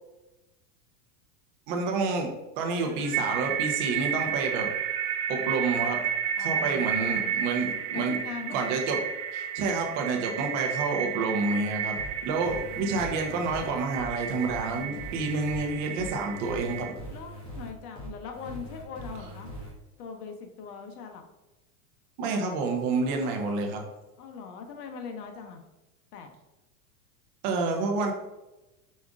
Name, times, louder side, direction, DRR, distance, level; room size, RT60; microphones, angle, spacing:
voice 1, 1.7-4.7 5.3-6.0 6.4-8.2 8.5-9.0 9.3-12.0 12.2-17.0 22.2-23.8 27.4-28.1, right 4 dB, 35° right, 3 dB, 0.6 m, -29 dB
sound 1, 2.6-16.9, right 8 dB, 70° right, 1.1 m, -32 dB
voice 2, 6.3-7.3 7.9-8.6 12.5-13.0 17.1-19.5 20.0-21.2 24.2-25.6 26.1-26.3, left 6 dB, 80° left, 4 dB, 1.0 m, -41 dB
sound 2, 12.0-19.7, equal, 10° left, 0.7 m, -41 dB
5.2 x 2.4 x 3.5 m, 1.0 s
supercardioid pair, 165°, 45 cm